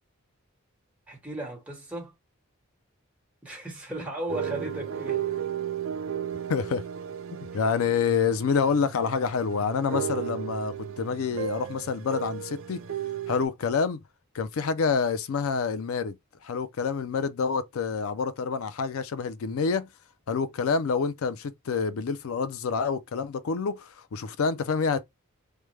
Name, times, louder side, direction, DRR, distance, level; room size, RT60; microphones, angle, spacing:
voice 1, 1.1-2.1 3.4-5.3, right 1 dB, 5° right, 1.3 m, -36 dB
sound 1, 4.3-13.5, right 9 dB, 70° right, 0.4 m, -34 dB
voice 2, 6.5-6.8 7.5-12.8 13.3-14.0 14.3-16.2 16.4-19.9 20.3-25.0, left 5 dB, 80° left, 0.4 m, -27 dB
3.3 x 2.1 x 3.1 m
head